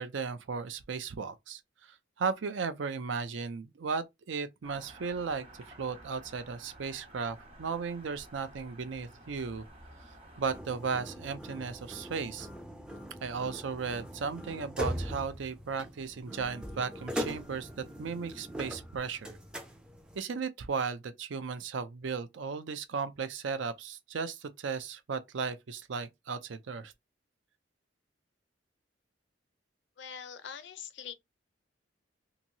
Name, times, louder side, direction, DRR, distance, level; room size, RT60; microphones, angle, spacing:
voice 1, 0.0-9.7 10.4-12.5 13.2-17.7 18.0-19.4 20.2-26.9, right 5 dB, 80° right, 0.5 m, -36 dB
sound 1, 4.6-10.6, right 1 dB, 30° right, 1.0 m, -53 dB
sound 2, 10.5-20.2, equal, 5° right, 0.3 m, -41 dB
voice 2, 30.0-31.1, left 7 dB, 65° left, 0.4 m, -43 dB
2.9 x 2.6 x 2.7 m
head